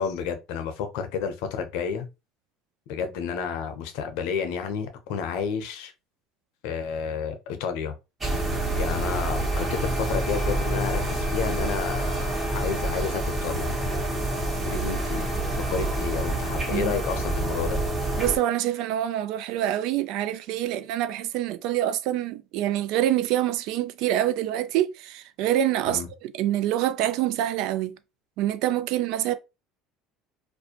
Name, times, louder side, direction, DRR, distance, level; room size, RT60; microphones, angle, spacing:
voice 1, 0.0-2.1 2.9-5.9 6.6-7.9 8.7-13.8 14.6-15.3 15.7-17.8 25.9-26.1, left 6 dB, 75° left, 0.6 m, -31 dB
sound 1, 8.2-18.4, right 1 dB, 25° right, 1.2 m, -27 dB
voice 2, 18.2-28.0 28.4-29.3, right 12 dB, 70° right, 0.3 m, -26 dB
2.5 x 2.1 x 2.8 m
supercardioid pair, 85°, 0 cm